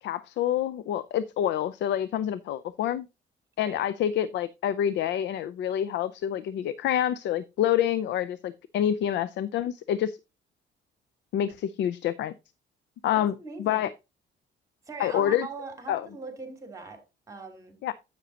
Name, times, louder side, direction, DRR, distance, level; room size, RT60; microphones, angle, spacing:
voice 1, 0.0-3.1 3.6-10.2 11.3-12.3 13.0-13.9 15.0-15.5 15.9-16.1 17.8-17.9, left 10 dB, 75° left, 0.5 m, -27 dB
voice 2, 13.1-13.9 14.9-17.8, right 4 dB, 15° right, 2.8 m, -41 dB
10.0 x 8.1 x 2.8 m
cardioid pair, 135°, 19 cm